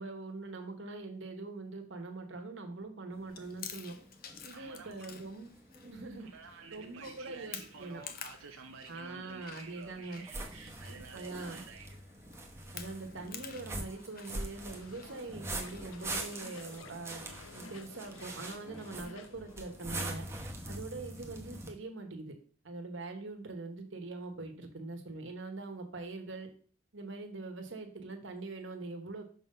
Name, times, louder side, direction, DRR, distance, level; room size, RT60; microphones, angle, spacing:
voice 1, 0.0-4.0 4.4-5.5 5.8-6.3 6.7-8.0 8.9-10.2 11.1-11.6 12.7-17.2 17.5-20.3 20.7-22.3 22.6-26.5 26.9-29.3, right 3 dB, 65° right, 5 dB, 1.2 m, -43 dB
sound 1, 3.1-21.7, right 2 dB, 15° right, 0.9 m, -45 dB
Chewing mastication, 3.3-16.4, left 7 dB, 45° left, 0.7 m, -51 dB
voice 2, 4.5-5.1 6.2-11.9, right 5 dB, 90° right, 4 dB, 0.6 m, -51 dB
sound 2, 14.7-20.0, left 4 dB, 80° left, 0.6 m, -53 dB
6.1 x 3.8 x 5.4 m, 0.44 s
head